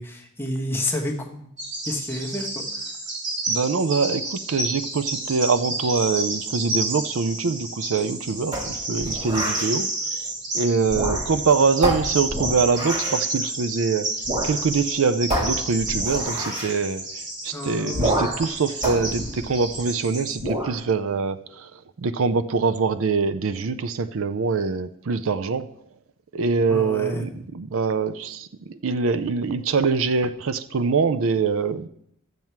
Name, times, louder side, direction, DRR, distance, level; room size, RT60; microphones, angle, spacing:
voice 1, 0.0-1.5 1.8-2.9 17.5-18.4 26.7-27.4, left 1 dB, 10° left, 0 dB, 1.2 m, -30 dB
Bird vocalization bird call bird song, 1.6-20.3, right 2 dB, 50° right, 4.0 m, -30 dB
voice 2, 3.5-14.1 14.4-17.0 17.4-25.7 26.3-31.9, right 4 dB, 65° right, 11 dB, 0.5 m, -24 dB
sound 1, 8.5-9.7 10.8-11.5 11.8-13.2 14.2-14.6 14.8-14.9 15.3-16.8 17.9-18.5 18.8-19.9 20.4-20.8, right 1 dB, 30° right, 2.7 m, -28 dB
12.0 x 7.4 x 4.6 m, 0.72 s
head